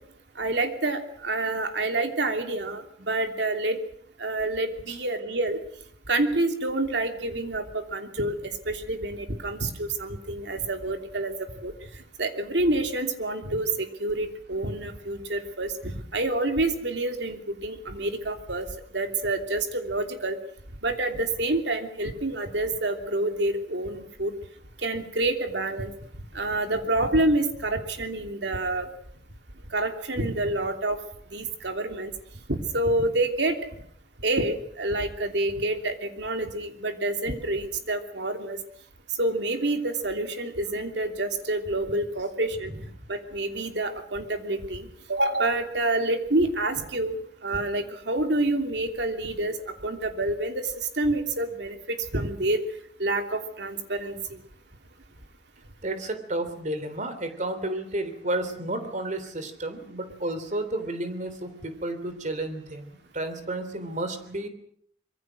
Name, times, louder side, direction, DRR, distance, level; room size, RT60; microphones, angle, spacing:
voice 1, 0.3-3.8 4.2-5.6 6.1-11.7 12.2-18.7 18.9-20.4 20.8-24.3 24.8-25.9 26.3-28.9 29.7-31.0 31.3-32.1 32.5-33.6 34.2-38.6 39.2-42.7 43.1-52.6 53.0-54.4, right 2 dB, 70° right, 6 dB, 3.0 m, -28 dB
voice 2, 55.8-64.5, right 1 dB, 45° right, 9 dB, 3.3 m, -32 dB
25.0 x 22.5 x 6.4 m, 0.64 s
head